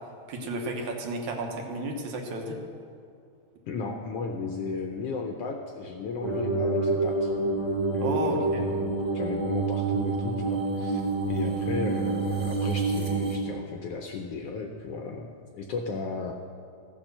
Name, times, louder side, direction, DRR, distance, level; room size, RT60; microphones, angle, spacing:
voice 1, 0.3-2.6 8.0-8.7, right 2 dB, 75° right, 2 dB, 2.5 m, -32 dB
voice 2, 3.7-7.3 7.9-11.0 11.3-16.4, left 4 dB, 75° left, 3 dB, 1.5 m, -35 dB
sound 1, 6.2-13.4, right 3 dB, 40° right, 2.6 m, -27 dB
14.5 x 7.4 x 6.7 m, 2.5 s
omnidirectional pair, 3.4 m